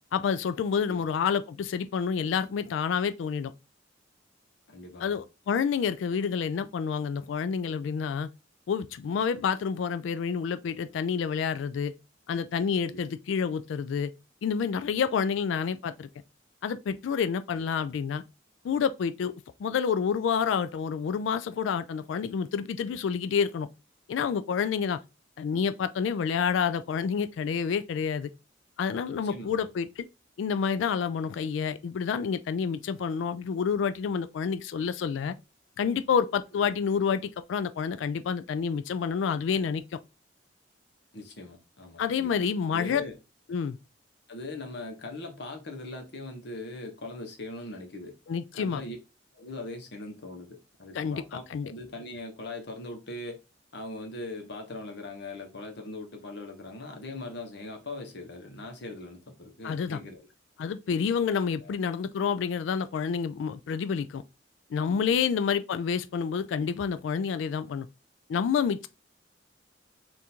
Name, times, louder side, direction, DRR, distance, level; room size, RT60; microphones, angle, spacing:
voice 1, 0.1-3.5 5.0-8.3 8.7-11.9 12.3-14.1 14.4-16.1 16.6-18.2 18.6-19.3 19.6-23.7 24.1-25.0 25.4-28.3 28.8-30.1 30.4-35.3 35.8-39.8 42.0-43.0 43.5-43.8 48.3-48.8 50.9-51.7 59.6-60.0 60.6-64.2 64.7-67.9 68.3-68.9, left 6 dB, 80° left, 0.3 m, -28 dB
voice 2, 4.7-5.2 12.9-13.0 17.5-17.6 29.3-29.7 41.1-42.4 42.7-43.1 44.3-48.1 48.5-49.0 49.3-53.4 53.7-60.2 61.6-61.7, left 2 dB, 65° left, 1.1 m, -40 dB
3.6 x 2.6 x 4.3 m
head